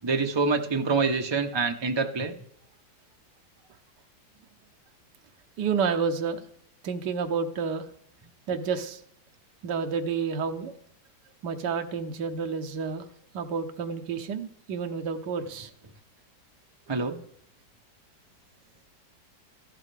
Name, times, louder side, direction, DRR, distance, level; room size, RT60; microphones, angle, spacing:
voice 1, 0.0-2.3 16.9-17.2, right 4 dB, 25° right, 5 dB, 0.5 m, -26 dB
voice 2, 5.6-6.4 6.8-7.9 8.5-9.0 9.6-10.7 11.4-13.1 13.3-15.7, right 5 dB, 75° right, 5 dB, 1.5 m, -30 dB
13.5 x 12.0 x 3.4 m, 0.67 s
omnidirectional pair, 1.9 m